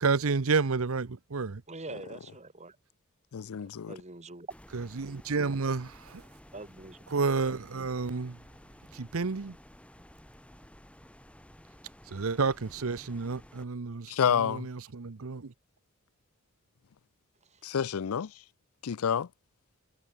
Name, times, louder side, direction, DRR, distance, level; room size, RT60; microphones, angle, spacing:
voice 1, 0.0-1.6 4.7-6.2 7.1-8.4 8.9-9.6 12.1-15.5, right 4 dB, 75° right, 0.8 m, -30 dB
voice 2, 1.7-2.8 3.9-4.5 6.5-7.0 17.4-17.6, right 2 dB, 30° right, 2.9 m, -44 dB
voice 3, 3.3-3.9 14.1-14.7 17.6-18.3 18.8-19.3, left 7 dB, 85° left, 0.5 m, -28 dB
sound 1, 4.5-13.6, equal, 5° left, 3.8 m, -54 dB
head